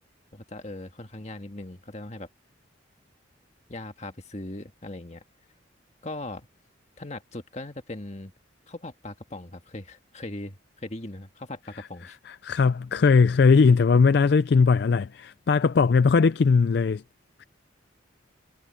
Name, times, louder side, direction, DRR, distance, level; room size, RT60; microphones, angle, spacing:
voice 1, 0.3-2.3 3.7-5.2 6.0-6.5 7.0-8.3 8.7-12.2, left 1 dB, 35° left, 1.7 m, -39 dB
voice 2, 12.3-17.0 17.4-17.5, left 5 dB, 55° left, 0.4 m, -19 dB
head